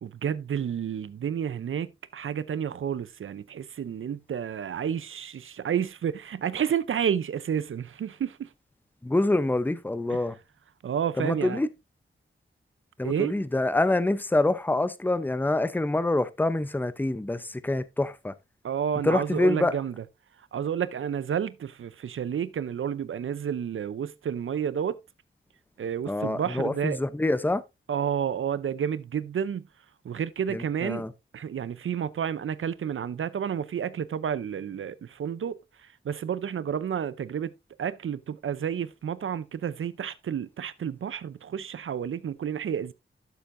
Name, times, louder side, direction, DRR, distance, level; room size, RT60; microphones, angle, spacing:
voice 1, 0.0-8.5 10.8-11.6 13.0-13.3 18.6-19.9 20.5-25.0 25.8-27.0 27.9-29.6 30.0-31.0 31.3-35.6 35.8-37.5 37.8-42.9, right 8 dB, 70° right, 0.6 m, -30 dB
voice 2, 9.0-10.4 11.2-11.7 13.0-18.3 19.0-19.8 26.1-27.6 30.5-31.1, left 2 dB, 10° left, 0.6 m, -26 dB
12.5 x 6.9 x 2.6 m
wide cardioid pair, 85°, 21 cm